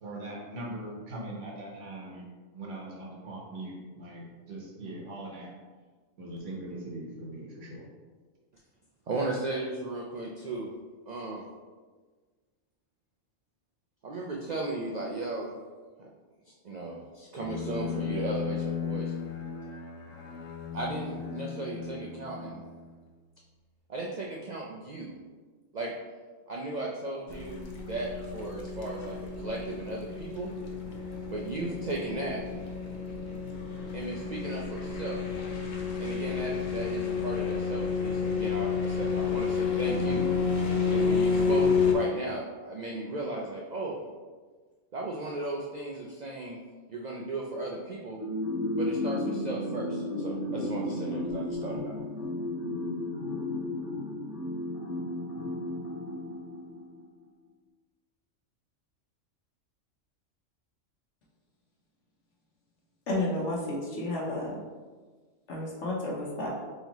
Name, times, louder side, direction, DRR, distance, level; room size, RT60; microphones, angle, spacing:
voice 1, 0.0-2.2 2.5-5.5 6.2-7.8, right 1 dB, 70° right, -2 dB, 1.3 m, -41 dB
voice 2, 9.1-10.7 11.1-11.4 14.0-15.5 16.0-16.1 16.5-19.1 20.7-22.6 23.9-25.2 25.7-25.9 26.5-30.5 31.3-32.4 33.9-35.2 36.0-40.2 40.8-44.0 44.9-46.6 46.9-48.2 48.8-52.0, right 2 dB, 90° right, -2 dB, 0.3 m, -36 dB
Bowed string instrument, 17.4-23.2, left 7 dB, 85° left, 1.0 m, -36 dB
sound 1, 27.3-41.9, left 5 dB, 50° left, 0.6 m, -30 dB
sound 2, 48.2-57.0, left 1 dB, 30° left, 1.1 m, -33 dB
voice 3, 63.1-64.6 65.5-66.6, left 1 dB, 65° left, -3 dB, 1.2 m, -31 dB
4.0 x 3.0 x 3.9 m, 1.4 s
omnidirectional pair, 1.3 m